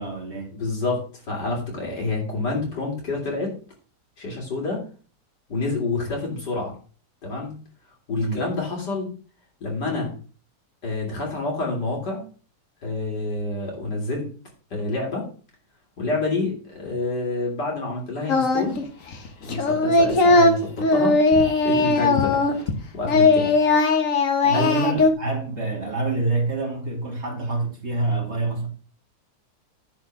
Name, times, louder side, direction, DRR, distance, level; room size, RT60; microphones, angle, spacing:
voice 1, 0.0-0.6 8.2-8.4 24.4-28.7, right 3 dB, 40° right, 2.5 m, -26 dB
voice 2, 0.6-3.6 4.2-4.8 5.5-6.8 7.2-7.5 8.1-9.1 9.6-10.1 10.8-12.2 12.8-14.3 14.7-15.3 16.0-18.8 19.4-21.2 21.6-22.5 22.9-23.5 24.5-24.8, left 3 dB, 85° left, 3.8 m, -28 dB
Singing, 18.3-18.9 19.1-22.8 23.0-25.1, left 3 dB, 50° left, 1.6 m, -19 dB
10.0 x 4.9 x 6.2 m
omnidirectional pair, 1.8 m